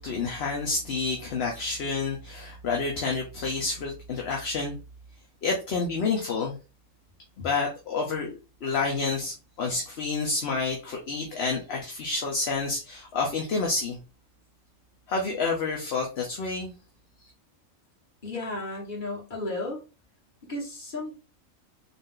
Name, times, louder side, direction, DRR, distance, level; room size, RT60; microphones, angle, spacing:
voice 1, 0.0-4.8 5.4-6.6 7.4-8.3 8.6-14.0 15.1-16.7 17.2-17.3, left 4 dB, 55° left, 0 dB, 1.0 m, -29 dB
voice 2, 18.2-19.8 20.5-21.2, left 2 dB, 35° left, -4 dB, 1.8 m, -33 dB
4.0 x 2.6 x 3.7 m, 0.31 s
omnidirectional pair, 1.4 m